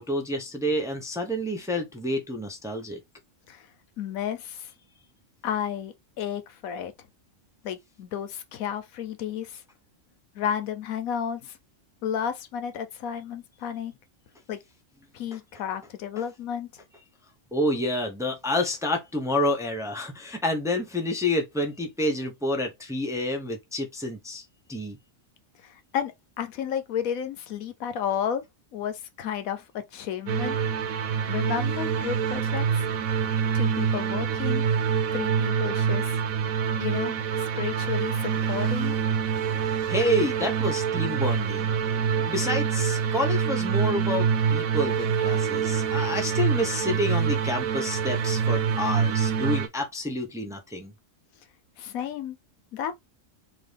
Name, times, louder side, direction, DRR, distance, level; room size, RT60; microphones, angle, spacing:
voice 1, 0.0-3.0 17.5-24.4 24.7-25.0 33.2-33.3 39.9-41.7 42.3-50.9, left 1 dB, 5° right, 0.7 m, -28 dB
voice 2, 4.0-4.7 5.4-6.9 7.6-9.6 10.3-11.6 12.0-13.9 14.5-14.6 15.1-16.7 25.6-28.4 28.7-29.7 29.9-30.6 31.3-32.8 33.5-34.6 35.1-36.1 36.8-39.0 51.8-52.4 52.7-52.9, left 9 dB, 90° left, 1.2 m, -32 dB
sound 1, 30.3-49.7, right 7 dB, 85° right, 1.2 m, -26 dB
3.9 x 2.8 x 3.3 m
omnidirectional pair, 1.4 m